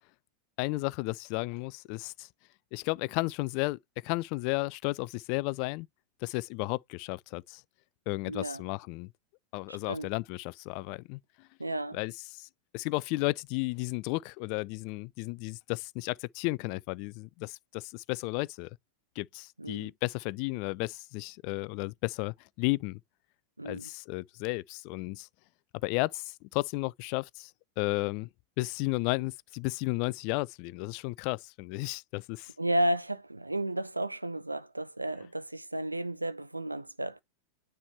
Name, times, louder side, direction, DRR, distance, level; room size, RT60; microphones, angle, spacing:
voice 1, 0.6-2.3 2.7-5.9 6.2-7.6 8.1-9.1 9.5-11.2 11.9-12.5 12.7-18.7 19.2-23.0 23.6-25.3 25.8-27.5 27.8-28.3 28.6-32.5, left 23 dB, 45° left, 0.3 m, -33 dB
voice 2, 8.3-8.6 9.7-10.1 11.6-12.0 19.6-19.9 23.6-23.9 32.6-37.2, right 1 dB, 85° right, 0.6 m, -33 dB
9.6 x 3.3 x 3.0 m
figure-of-eight pair, 90°, 0 cm